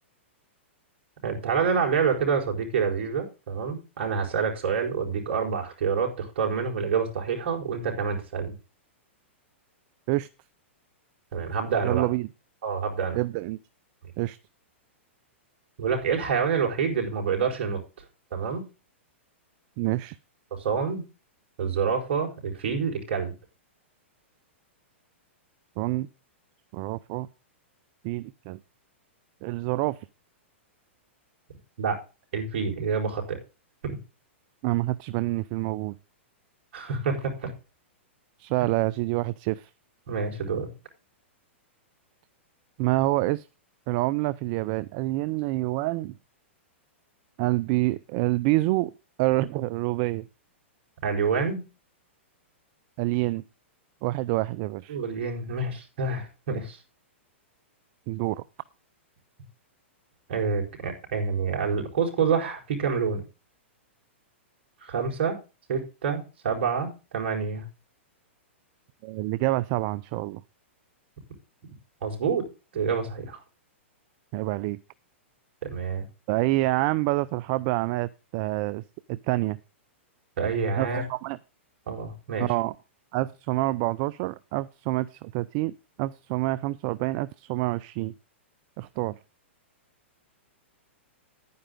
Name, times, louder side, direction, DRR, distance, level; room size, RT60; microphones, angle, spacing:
voice 1, 1.2-8.5 11.3-12.1 12.6-13.2 15.8-17.8 18.3-18.6 20.5-21.0 21.6-23.3 31.8-32.0 32.3-33.4 33.8-34.0 36.7-37.5 40.1-40.7 51.0-51.6 54.9-56.8 60.3-63.2 64.8-65.4 65.7-67.6 72.0-72.4 72.7-73.4 75.7-76.1 80.4-81.0 81.9-82.5, right 5 dB, 60° right, 2 dB, 4.5 m, -27 dB
voice 2, 11.8-12.3 13.1-13.6 14.2-14.4 19.8-20.2 25.8-26.1 26.7-27.3 28.0-28.6 29.4-30.0 34.6-36.0 38.4-39.7 42.8-43.5 43.9-46.1 47.4-48.9 49.2-50.3 53.0-53.4 54.0-55.0 58.1-58.4 69.0-70.4 74.3-74.8 76.3-78.8 79.1-79.6 80.8-81.4 82.4-82.7 83.1-88.1 88.8-89.2, right 18 dB, 45° right, 17 dB, 0.5 m, -27 dB
11.5 x 9.5 x 3.8 m, 0.31 s
hypercardioid pair, 130°, 7 cm